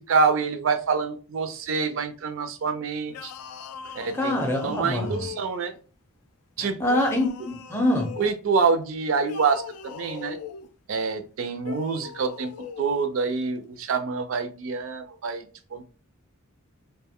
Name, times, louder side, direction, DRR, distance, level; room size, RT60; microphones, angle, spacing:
voice 1, 0.0-3.3 4.0-4.4 4.6-5.7 6.6-7.0 8.2-10.4 10.9-12.5 12.8-15.5 15.7-15.8, right 5 dB, 60° right, 0.4 m, -26 dB
sound 1, 3.1-5.8 6.9-8.4 9.2-10.7 11.6-13.0, left 8 dB, 85° left, 0.3 m, -40 dB
voice 2, 4.1-5.3 6.6-8.2, left 1 dB, 10° left, 0.5 m, -25 dB
2.4 x 2.1 x 3.5 m
head